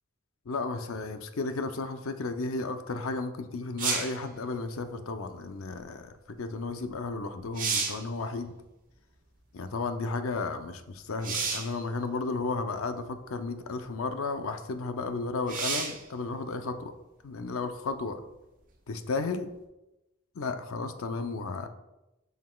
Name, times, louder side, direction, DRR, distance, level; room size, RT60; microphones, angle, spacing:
voice 1, 0.5-8.5 9.5-16.9 17.2-18.2 18.9-19.5 20.4-21.7, left 3 dB, 70° left, 8 dB, 0.5 m, -33 dB
Wet Hat Sounds, 3.8-4.2 6.9-7.0 7.4-8.1 11.2-11.8 12.8-12.9 15.5-16.0 19.6-19.7, right 5 dB, 40° right, 1.0 m, -31 dB
7.3 x 5.7 x 2.3 m, 0.96 s
head